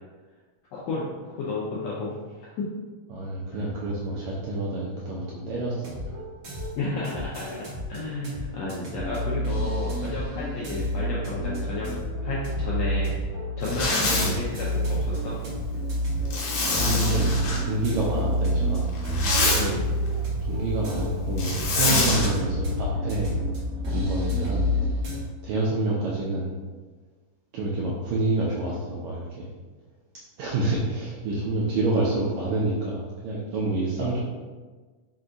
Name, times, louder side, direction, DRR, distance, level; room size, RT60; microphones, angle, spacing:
voice 1, 0.7-2.1 2.6-2.7 3.5-3.7 6.8-11.9 12.2-13.1 13.6-15.3 19.6-19.8, left 3 dB, 90° left, -6 dB, 1.5 m, -32 dB
voice 2, 3.1-6.1 14.1-14.4 16.7-18.9 20.4-23.4 23.9-24.7 25.4-26.5 27.5-29.5 30.4-34.2, right 2 dB, 80° right, -5 dB, 1.7 m, -28 dB
sound 1, 5.7-25.2, equal, 65° right, 1.2 m, -35 dB
sound 2, 9.1-25.1, equal, 45° right, 1.6 m, -29 dB
Zipper (clothing), 13.6-14.3 16.3-17.6 18.9-19.6 21.4-22.3, left 2 dB, 70° left, 2.0 m, -25 dB
5.2 x 2.3 x 3.7 m, 1.4 s
omnidirectional pair, 3.8 m